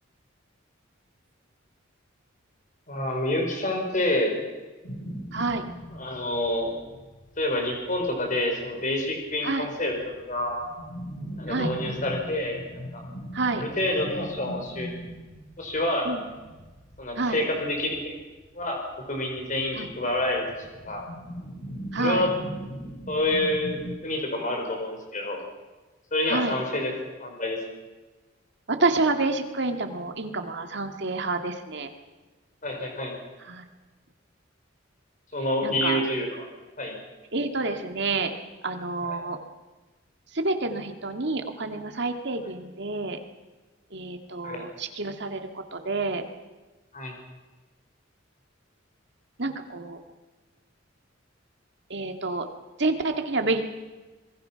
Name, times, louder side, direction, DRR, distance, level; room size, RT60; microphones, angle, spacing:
voice 1, 2.9-4.4 5.9-6.7 7.4-10.7 11.4-12.6 12.9-13.0 13.6-15.0 15.6-16.1 17.0-18.1 18.5-20.4 20.8-21.0 22.0-22.3 23.1-25.5 26.1-26.9 27.2-27.6 32.6-33.1 35.3-36.5 36.8-36.9 39.0-39.1 44.4-44.6 46.9-47.1, left 1 dB, 40° left, 2 dB, 5.1 m, -28 dB
sound 1, 4.8-8.8 9.1-9.2 9.5-24.0, right 1 dB, 75° left, 5.0 m, -39 dB
voice 2, 5.3-5.7 9.4-9.7 11.5-11.7 13.3-13.6 16.0-16.2 17.2-17.4 19.7-19.9 21.9-22.3 26.3-26.6 28.7-31.9 33.4-33.6 35.6-36.0 37.3-38.3 38.6-39.4 40.3-43.2 43.9-46.2 49.4-50.0 51.9-52.5 52.8-53.6, right 3 dB, 60° right, 5 dB, 2.2 m, -28 dB
26.5 x 21.0 x 5.9 m, 1.2 s
head